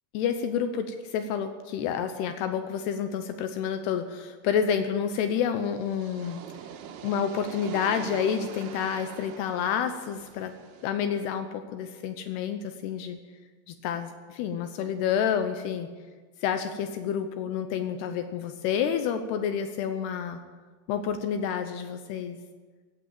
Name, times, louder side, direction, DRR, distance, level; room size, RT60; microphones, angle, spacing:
voice 1, 0.1-6.4 7.0-10.5 10.8-13.2 13.7-15.9 16.4-20.4 20.9-22.4, left 8 dB, 90° left, 7 dB, 2.3 m, -29 dB
sound 1, 5.4-10.9, right 8 dB, 75° right, 3.0 m, -43 dB
16.5 x 9.0 x 9.2 m, 1.4 s
omnidirectional pair, 5.9 m